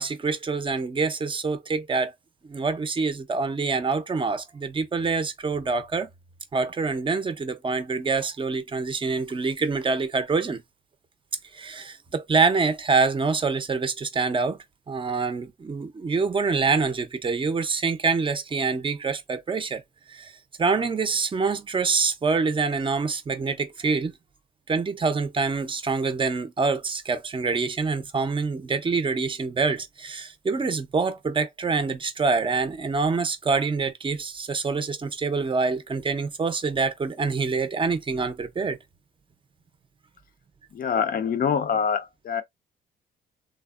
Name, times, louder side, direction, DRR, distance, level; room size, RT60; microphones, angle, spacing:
voice 1, 0.0-2.1 2.4-6.1 6.5-10.6 11.5-14.6 14.9-19.8 20.1-20.3 20.6-24.1 24.7-38.8, right 4 dB, 25° right, 0.5 m, -26 dB
voice 2, 40.7-42.4, left 7 dB, 45° left, 0.5 m, -25 dB
3.4 x 2.0 x 2.3 m
cardioid pair, 90°, 20 cm